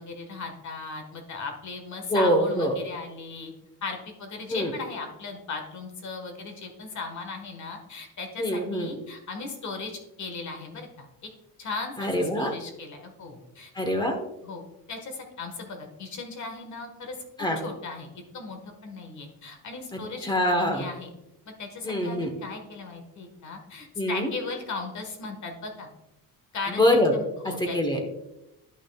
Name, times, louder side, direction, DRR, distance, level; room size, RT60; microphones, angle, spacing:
voice 1, 0.0-3.5 3.8-11.3 11.6-13.7 14.4-14.6 14.9-20.3 20.6-21.1 21.4-25.9 26.5-27.8, left 4 dB, 55° left, 4 dB, 1.5 m, -37 dB
voice 2, 2.1-2.7 4.5-4.7 8.4-8.9 12.0-12.5 13.8-14.2 17.4-17.6 19.9-20.8 21.8-22.3 24.0-24.3 26.7-27.1 27.6-28.0, left 1 dB, 15° left, 4 dB, 1.1 m, -24 dB
11.0 x 6.0 x 2.3 m, 0.90 s
cardioid pair, 135°, 34 cm